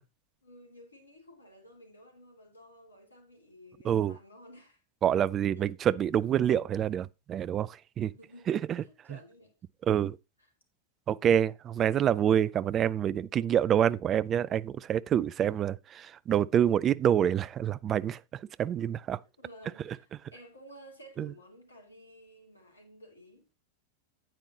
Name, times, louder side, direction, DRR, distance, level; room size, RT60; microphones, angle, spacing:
voice 1, 0.4-4.8 5.6-5.8 8.1-9.5 10.4-10.5 19.4-23.5, equal, 80° left, 2.5 m, -54 dB
voice 2, 3.8-4.2 5.0-8.1 8.5-8.8 9.9-10.2 11.1-18.2 18.6-19.2 21.2-21.3, right 9 dB, 30° right, 0.4 m, -27 dB
9.1 x 9.0 x 2.8 m
figure-of-eight pair, 90°, 0 cm